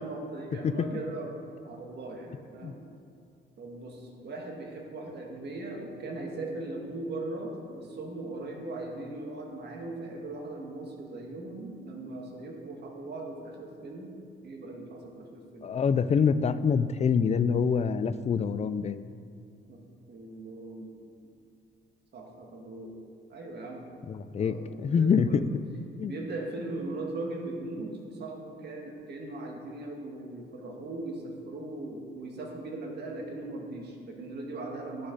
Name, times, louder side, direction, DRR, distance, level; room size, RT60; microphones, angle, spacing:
voice 1, 0.0-1.4 1.6-2.8 3.6-14.1 14.4-15.7 19.7-19.8 20.1-20.9 22.1-22.9 23.3-23.8 24.4-25.5 26.0-35.1, right 2 dB, 60° right, 1 dB, 1.7 m, -39 dB
voice 2, 15.6-19.0 24.1-25.3 26.0-26.1, left 6 dB, 35° left, 13 dB, 0.4 m, -26 dB
11.0 x 6.6 x 4.0 m, 2.5 s
cardioid pair, 90°, 20 cm